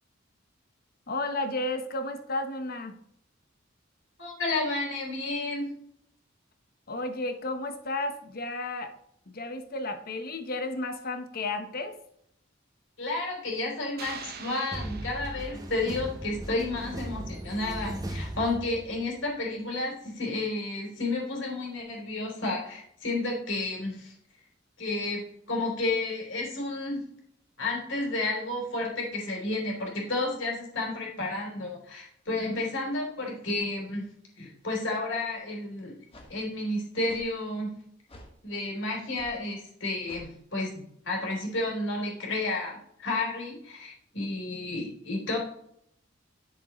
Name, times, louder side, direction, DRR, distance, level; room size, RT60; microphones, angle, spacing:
voice 1, 1.1-3.0 6.9-8.9 9.3-12.0, left 2 dB, 50° left, 8 dB, 1.0 m, -33 dB
voice 2, 4.2-5.7 13.0-24.1 24.8-25.2 25.5-27.0 27.6-34.1 34.4-35.9 36.3-37.7 38.4-45.4, left 2 dB, 70° left, -1 dB, 3.3 m, -31 dB
sound 1, 14.0-16.1, right 6 dB, 55° right, 1.0 m, -44 dB
sound 2, 14.7-19.2, right 1 dB, 20° right, 1.0 m, -37 dB
sound 3, 35.2-35.3 36.1-36.3 37.1-37.3 38.1-38.3 39.1-39.4 40.0-40.3, left 1 dB, 30° left, 1.6 m, -49 dB
10.5 x 7.0 x 3.1 m, 0.71 s
head